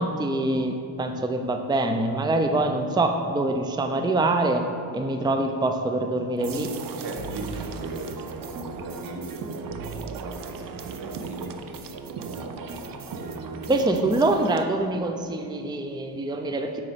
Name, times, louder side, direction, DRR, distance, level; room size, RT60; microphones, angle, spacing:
voice 1, 0.0-4.7 4.9-6.7 13.7-16.8, right 2 dB, 10° right, 5 dB, 0.6 m, -25 dB
sound 1, 6.4-14.7, right 5 dB, 55° right, 0.8 m, -37 dB
voice 2, 7.0-13.9, right 2 dB, 75° right, 2 dB, 1.7 m, -38 dB
7.7 x 6.5 x 7.8 m, 2.5 s
cardioid pair, 110°, 40 cm